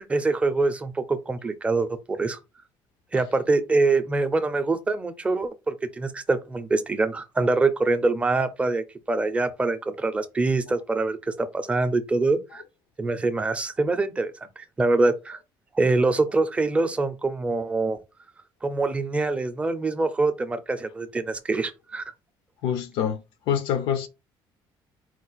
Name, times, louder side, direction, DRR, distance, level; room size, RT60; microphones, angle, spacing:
voice 1, 0.0-2.4 3.1-12.6 13.0-15.4 15.7-18.0 18.6-22.0, right 3 dB, 15° right, 0.5 m, -24 dB
voice 2, 22.6-23.2 23.5-24.1, left 8 dB, 85° left, 0.6 m, -25 dB
4.5 x 2.4 x 3.9 m
cardioid pair, 165°, 9 cm